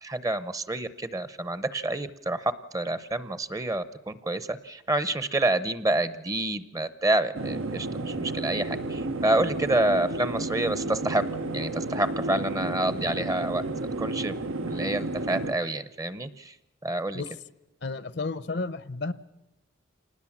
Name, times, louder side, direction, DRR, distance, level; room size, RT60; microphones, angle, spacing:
voice 1, 0.0-11.2 11.5-13.6 14.0-14.3 14.6-16.5 16.8-17.2, right 2 dB, 15° right, 15 dB, 0.7 m, -28 dB
sound 1, 7.3-15.5, right 2 dB, 85° right, 1.1 m, -32 dB
voice 2, 17.8-19.1, left 3 dB, 55° left, 16 dB, 0.7 m, -32 dB
27.0 x 19.5 x 7.3 m, 0.99 s
head